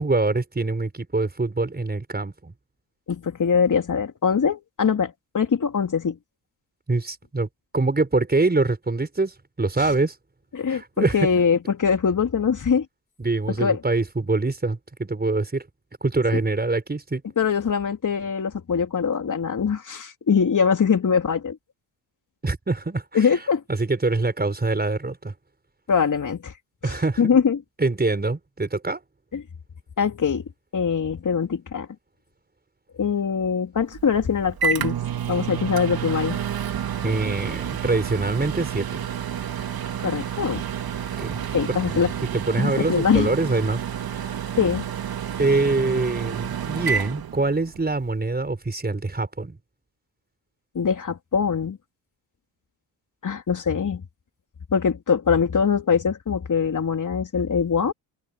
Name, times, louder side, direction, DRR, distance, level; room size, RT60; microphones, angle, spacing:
voice 1, 0.0-2.5 6.9-7.5 7.7-10.1 10.7-11.2 13.2-15.6 16.0-17.2 22.4-23.3 23.7-25.3 26.8-27.3 27.8-29.0 37.0-39.0 41.2-41.4 41.9-42.0 42.3-44.4 45.4-49.6, right 3 dB, 20° right, 6.1 m, -24 dB
voice 2, 3.1-6.2 10.5-12.9 13.6-13.8 17.4-21.6 23.1-23.6 25.9-26.5 26.8-27.6 29.3-29.4 30.0-30.4 30.7-31.9 33.0-35.0 35.3-36.4 40.0-40.6 41.5-42.1 42.6-43.3 44.6-44.8 50.7-51.8 53.2-54.0 54.7-57.9, left 6 dB, 45° left, 3.9 m, -22 dB
Microwave oven, 33.9-48.0, right 8 dB, 55° right, 3.0 m, -29 dB
supercardioid pair, 65°, 43 cm